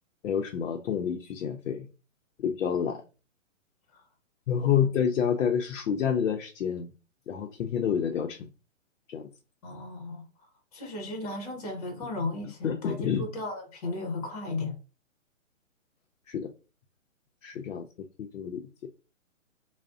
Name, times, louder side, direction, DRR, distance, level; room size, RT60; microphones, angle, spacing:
voice 1, 0.2-1.9 2.4-3.0 4.5-6.9 7.3-8.5 9.1-9.3 12.6-13.3 16.3-16.5 17.4-18.6, left 8 dB, 70° left, 0.5 m, -28 dB
voice 2, 9.6-10.2 10.7-14.8, left 2 dB, 30° left, 0.7 m, -35 dB
2.4 x 2.0 x 3.5 m
hypercardioid pair, 160°, 40 cm